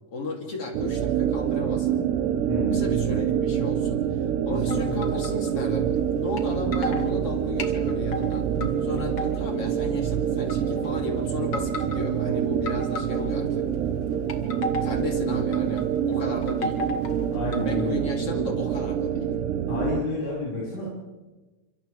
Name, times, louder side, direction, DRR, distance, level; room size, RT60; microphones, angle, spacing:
voice 1, 0.1-2.0 2.7-5.9 6.2-8.5 8.8-13.7 14.8-16.8 17.6-19.3, left 2 dB, 35° left, 0 dB, 3.6 m, -34 dB
sound 1, 0.7-20.0, right 9 dB, 85° right, 3.1 m, -26 dB
voice 2, 2.5-2.9 4.7-5.0 8.6-8.7 17.3-18.0 19.7-20.9, left 2 dB, 85° left, -6 dB, 7.9 m, -30 dB
sound 2, 4.7-5.5 6.4-6.5 6.7-7.1 7.6-8.7 9.0-9.7 10.4-10.9 11.4-12.1 12.7-13.5 14.1-15.0 15.5-15.8 16.1-18.0, left 1 dB, 60° left, 1.1 m, -34 dB
30.0 x 26.5 x 3.5 m, 1.2 s
omnidirectional pair, 4.8 m